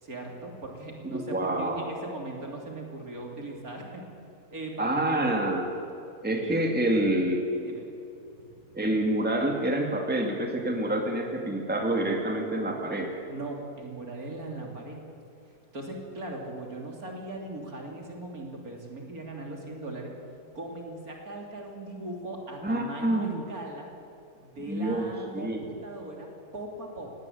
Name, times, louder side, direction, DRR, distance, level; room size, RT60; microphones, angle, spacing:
voice 1, 0.0-4.0 4.5-5.4 6.4-6.6 7.5-7.8 8.2-8.8 13.3-15.0 15.7-20.1 20.6-23.9 24.3-27.1, right 2 dB, 60° right, 1 dB, 3.6 m, -39 dB
voice 2, 1.0-1.8 4.8-5.7 6.2-7.5 8.7-13.1 22.6-23.4 24.7-25.6, right 1 dB, 5° right, 2 dB, 2.2 m, -27 dB
19.0 x 18.0 x 9.4 m, 2.7 s
omnidirectional pair, 1.7 m